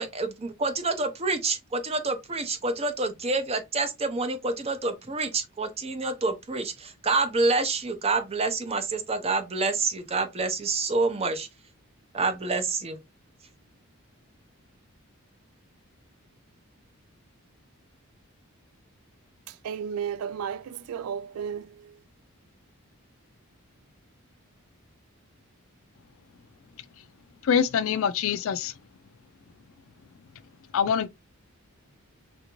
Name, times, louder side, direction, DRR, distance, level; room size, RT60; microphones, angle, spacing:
voice 1, 0.0-11.5 12.1-13.0, right 3 dB, 30° right, 0.6 m, -27 dB
voice 2, 19.5-22.0, right 7 dB, 80° right, 0.3 m, -34 dB
voice 3, 27.4-28.7 30.7-31.1, left 7 dB, 65° left, 0.4 m, -24 dB
3.3 x 2.6 x 2.9 m
head